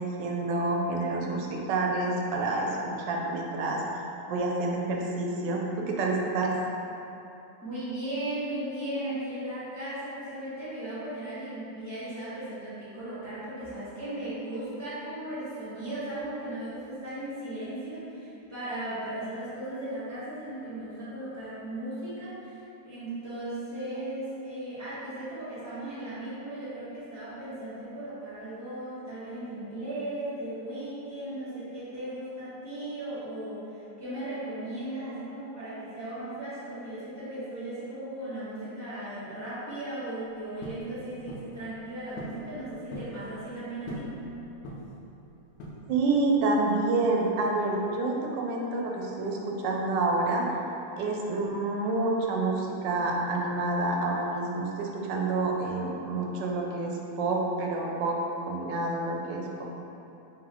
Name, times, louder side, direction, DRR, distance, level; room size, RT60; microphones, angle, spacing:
voice 1, 0.0-3.8 4.3-6.6 45.9-50.4 51.0-59.8, right 2 dB, 90° right, -1 dB, 1.3 m, -28 dB
voice 2, 7.6-44.1, right 1 dB, 10° left, -13 dB, 0.9 m, -37 dB
sound 1, 40.6-40.9 41.3-41.5 42.2-42.4 42.7-43.2 43.9-44.2 44.6-45.0 45.6-46.1, left 1 dB, 85° left, 1.3 m, -40 dB
3.8 x 3.7 x 2.9 m, 2.8 s
omnidirectional pair, 1.9 m